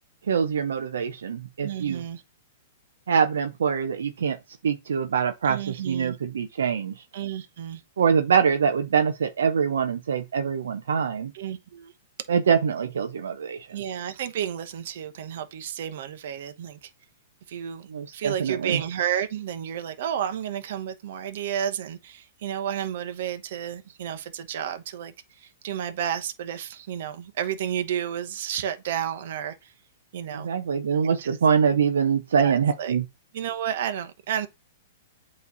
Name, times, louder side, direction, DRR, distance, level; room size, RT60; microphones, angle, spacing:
voice 1, 0.3-2.0 3.1-4.4 4.6-7.0 8.0-11.3 12.3-13.7 17.9-18.8 30.3-33.0, right 6 dB, 85° right, 0.7 m, -24 dB
voice 2, 1.6-2.2 5.4-6.2 7.1-7.8 11.3-11.9 13.7-16.9 17.5-17.9 18.1-29.7 30.1-30.5 31.0-31.4 32.4-32.5 32.8-33.0 33.3-34.5, right 9 dB, 60° right, 1.0 m, -31 dB
8.3 x 3.2 x 4.0 m
hypercardioid pair, 140°, 0 cm